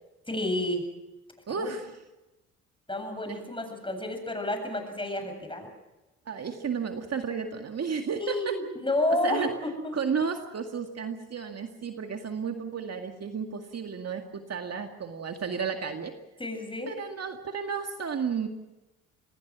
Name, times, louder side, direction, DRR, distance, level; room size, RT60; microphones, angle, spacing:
voice 1, 0.3-0.9 1.6-1.7 2.9-5.7 8.2-10.0 16.4-16.9, left 1 dB, 15° left, 5 dB, 7.7 m, -30 dB
voice 2, 1.5-1.9 3.3-3.4 6.3-8.6 9.2-9.5 9.9-16.1 16.9-18.5, right 6 dB, 45° right, 5 dB, 2.1 m, -32 dB
26.5 x 20.5 x 6.2 m, 1.0 s
supercardioid pair, 60°, 36 cm